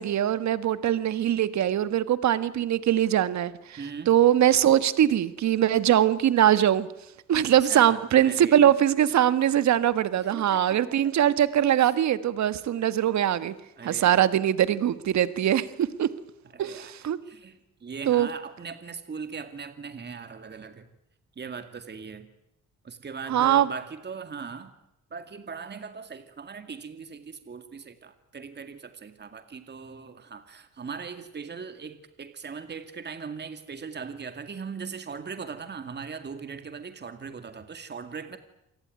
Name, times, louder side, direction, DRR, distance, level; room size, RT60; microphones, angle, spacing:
voice 1, 0.0-3.8 4.1-6.9 7.3-13.5 13.8-16.1 16.6-17.2 18.1-18.3 23.3-23.7, right 11 dB, 65° right, 14 dB, 1.6 m, -22 dB
voice 2, 3.8-4.1 7.3-8.7 10.2-10.8 11.8-11.9 13.8-14.2 16.5-20.9 21.4-22.3 22.8-24.7 25.1-38.4, right 5 dB, 35° right, 9 dB, 2.2 m, -39 dB
28.0 x 18.5 x 9.6 m, 0.87 s
cardioid pair, 90°, 30 cm